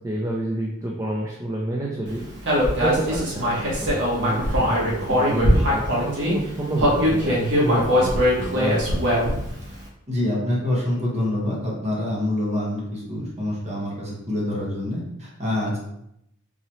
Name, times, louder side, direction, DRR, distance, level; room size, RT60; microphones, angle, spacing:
voice 1, 0.0-2.2 2.8-9.2, right 1 dB, 15° right, -3 dB, 0.4 m, -29 dB
Human voice, 2.5-6.3 6.8-9.5, equal, 55° right, 1.2 m, -21 dB
voice 2, 10.1-15.8, left 1 dB, 30° right, -4 dB, 1.2 m, -26 dB
4.0 x 2.9 x 3.0 m, 0.79 s
head